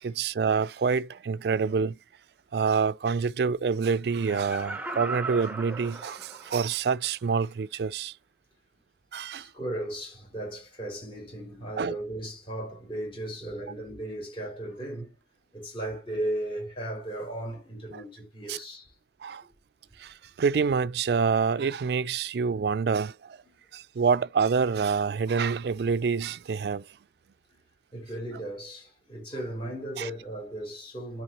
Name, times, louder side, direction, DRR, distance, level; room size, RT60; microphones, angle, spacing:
voice 1, 0.0-2.0 2.5-8.1 9.1-9.5 11.8-12.0 17.9-18.0 18.5-18.6 19.2-19.4 20.0-23.4 23.7-26.8 30.0-30.1, right 5 dB, 65° right, 0.4 m, -27 dB
Laughter, 4.1-6.8 7.2-7.3, right 3 dB, 10° right, 0.8 m, -37 dB
voice 2, 9.4-15.1 15.5-18.9 24.0-24.1 27.5-27.6 27.9-31.2, right 1 dB, 30° left, 4.7 m, -36 dB
13.0 x 4.7 x 2.9 m
head